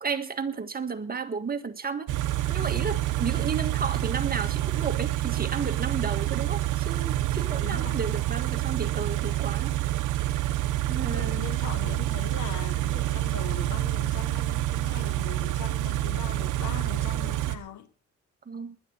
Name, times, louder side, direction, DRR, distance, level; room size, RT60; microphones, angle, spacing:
voice 1, 0.0-2.1 2.5-9.8 10.9-11.5 18.5-18.8, right 5 dB, 30° right, 1.8 m, -33 dB
Car / Idling, 2.1-17.6, right 15 dB, 85° right, 1.0 m, -27 dB
voice 2, 7.6-8.0 11.0-17.9, left 8 dB, 70° left, 1.6 m, -40 dB
20.5 x 11.0 x 4.1 m
cardioid pair, 90°, 30 cm